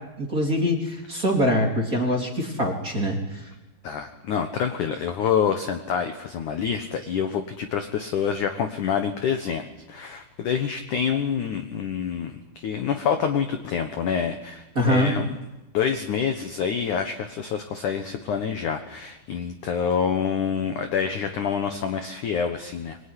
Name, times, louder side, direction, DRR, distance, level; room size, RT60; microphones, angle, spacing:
voice 1, 0.2-3.5 14.8-15.1, equal, 20° right, 1 dB, 3.4 m, -24 dB
voice 2, 3.8-9.6 9.9-15.3 15.7-23.0, left 7 dB, 65° left, 7 dB, 2.0 m, -27 dB
25.0 x 22.0 x 9.9 m, 1.0 s
omnidirectional pair, 5.3 m